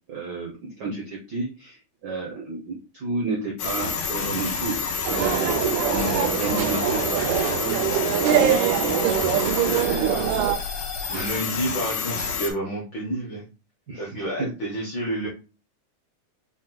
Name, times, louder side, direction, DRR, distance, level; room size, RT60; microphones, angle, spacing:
voice 1, 0.1-9.0 9.4-10.1 11.1-11.3 13.9-14.5, right 3 dB, 75° right, -2 dB, 0.9 m, -32 dB
sound 1, 3.6-12.5, left 5 dB, 90° left, 2.6 m, -29 dB
sound 2, 5.0-10.5, right 9 dB, 90° right, 2.1 m, -23 dB
voice 2, 10.0-10.3 11.1-13.4 14.0-15.3, right 1 dB, 65° left, -2 dB, 1.1 m, -30 dB
6.1 x 2.3 x 3.8 m, 0.32 s
omnidirectional pair, 3.4 m